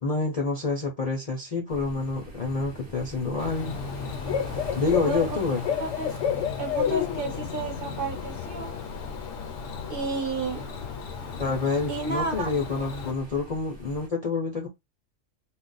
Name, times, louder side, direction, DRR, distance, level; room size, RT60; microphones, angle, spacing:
voice 1, 0.0-3.8 4.7-5.6 11.4-14.7, left 4 dB, 45° left, 0.5 m, -28 dB
sound 1, 1.7-14.1, equal, 25° right, 0.9 m, -43 dB
Bird / Cricket, 3.4-13.1, left 7 dB, 70° left, 0.9 m, -32 dB
voice 2, 5.0-5.4 5.8-6.2 6.6-8.7 9.9-10.6 11.9-12.5, right 4 dB, 50° right, 0.8 m, -32 dB
2.4 x 2.1 x 3.9 m
omnidirectional pair, 1.3 m